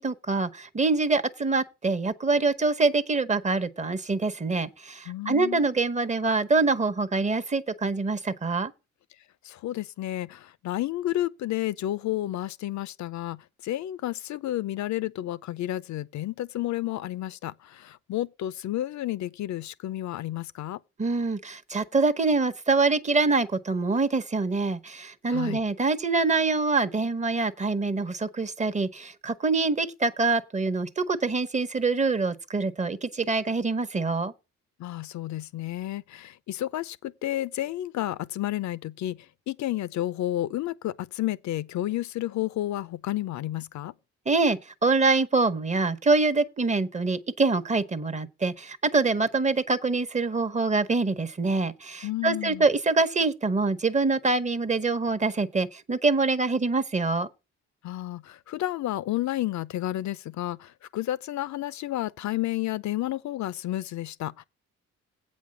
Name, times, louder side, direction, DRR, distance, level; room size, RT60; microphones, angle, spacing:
voice 1, 0.0-8.7 21.0-34.3 44.3-57.3, right 3 dB, 25° right, 1.0 m, -25 dB
voice 2, 5.1-5.6 9.4-20.8 25.3-25.6 34.8-39.2 39.5-43.9 52.0-52.7 57.8-64.4, left 14 dB, 70° left, 0.6 m, -31 dB
8.3 x 5.2 x 7.6 m
cardioid pair, 90°, 30 cm